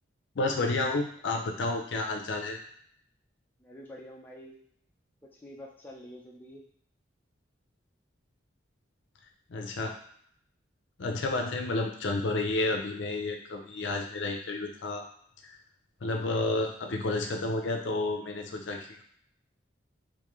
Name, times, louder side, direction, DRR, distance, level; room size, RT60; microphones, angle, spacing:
voice 1, 0.4-2.6 9.5-9.9 11.0-15.0 15.4-15.6 16.0-19.0, left 2 dB, 65° left, 2 dB, 0.5 m, -31 dB
voice 2, 3.6-4.6 5.2-6.6, equal, 10° left, -3 dB, 0.4 m, -47 dB
3.7 x 2.6 x 3.0 m, 0.63 s
head